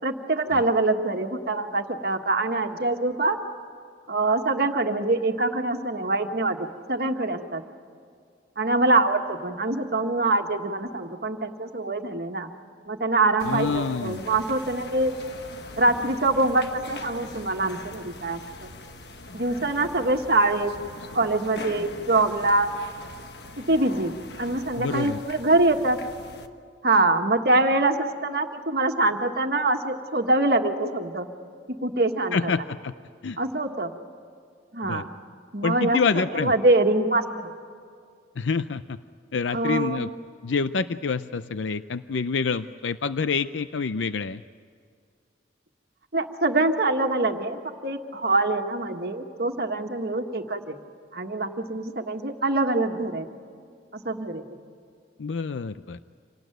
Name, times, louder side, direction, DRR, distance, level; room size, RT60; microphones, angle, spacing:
voice 1, 0.0-3.4 4.1-7.6 8.6-12.5 12.9-15.1 15.8-18.7 19.3-20.7 21.1-22.7 23.7-24.1 24.4-26.0 26.8-31.3 31.8-32.4 33.4-33.9 34.7-35.1 35.5-36.0 36.3-37.5 39.5-40.1 46.1-50.7 51.1-53.3 53.9-54.4, right 2 dB, 55° right, 5 dB, 1.6 m, -24 dB
voice 2, 13.4-14.2 24.8-25.2 32.3-32.9 33.2-33.4 34.8-35.0 35.6-36.5 38.4-39.0 39.3-40.1 40.4-44.4 55.2-56.0, left 5 dB, 90° left, 12 dB, 0.5 m, -27 dB
sound 1, 13.4-26.5, left 2 dB, 65° left, 1.3 m, -42 dB
26.5 x 18.5 x 9.2 m, 2.2 s
head